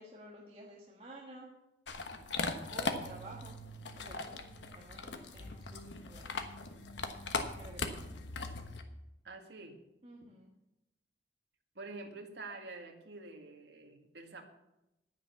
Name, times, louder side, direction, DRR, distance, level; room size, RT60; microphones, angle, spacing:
voice 1, 0.0-1.5 2.6-3.6 4.0-4.4 4.8-6.3 7.5-8.0 10.0-10.5, right 1 dB, 30° right, -3 dB, 1.6 m, -52 dB
sound 1, 1.9-8.8, left 3 dB, 90° left, 1.2 m, -39 dB
voice 2, 9.2-9.8 11.8-14.4, right 3 dB, 75° right, 3 dB, 2.0 m, -47 dB
10.0 x 9.6 x 6.8 m, 0.92 s
head